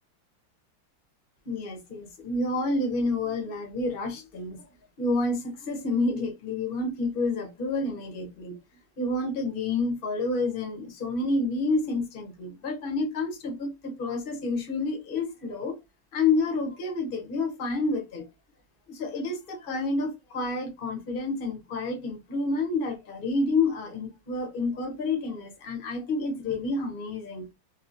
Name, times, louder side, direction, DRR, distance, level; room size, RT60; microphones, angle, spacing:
voice 1, 1.5-4.6 5.0-8.6 9.0-15.8 16.1-18.3 18.9-27.5, left 3 dB, 45° left, 0.7 m, -29 dB
2.9 x 2.8 x 2.6 m
omnidirectional pair, 2.1 m